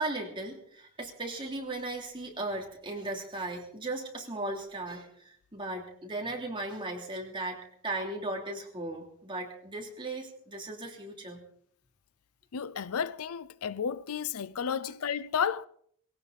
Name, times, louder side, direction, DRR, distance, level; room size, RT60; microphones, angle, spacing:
voice 1, 0.0-11.4, right 2 dB, 25° right, 3.0 m, -37 dB
voice 2, 12.5-15.7, left 7 dB, 75° left, 0.5 m, -32 dB
18.0 x 17.5 x 4.1 m
head